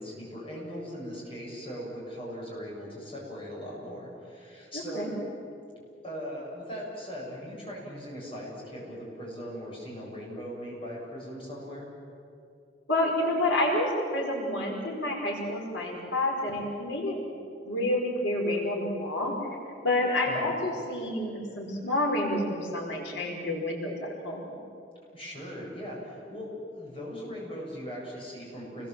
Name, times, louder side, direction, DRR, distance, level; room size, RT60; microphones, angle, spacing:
voice 1, 0.0-5.1 6.0-11.9 20.2-20.5 25.1-28.9, equal, 30° left, -3 dB, 8.0 m, -39 dB
voice 2, 4.7-5.1 12.9-17.2 17.6-19.3 19.8-24.5, left 1 dB, 85° left, -1 dB, 5.1 m, -29 dB
29.5 x 21.0 x 7.7 m, 2.5 s
head